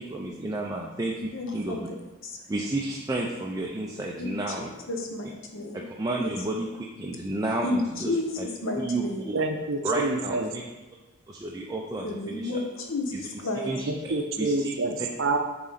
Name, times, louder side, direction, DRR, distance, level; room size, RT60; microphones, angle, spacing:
voice 1, 0.0-1.9 2.5-4.7 5.9-8.1 8.4-8.5 8.7-9.3 9.8-10.3 11.3-12.5 13.1-13.2 13.6-13.9 14.4-15.1, right 2 dB, 15° right, -2 dB, 0.4 m, -31 dB
voice 2, 1.3-2.0 2.2-2.4 4.2-4.5 4.9-5.8 6.2-6.3 7.6-9.3 12.0-13.7, left 2 dB, 60° left, 2 dB, 0.9 m, -32 dB
voice 3, 9.3-10.5 13.9-15.4, right 2 dB, 60° right, 4 dB, 0.7 m, -27 dB
7.3 x 3.8 x 4.0 m, 1.1 s
head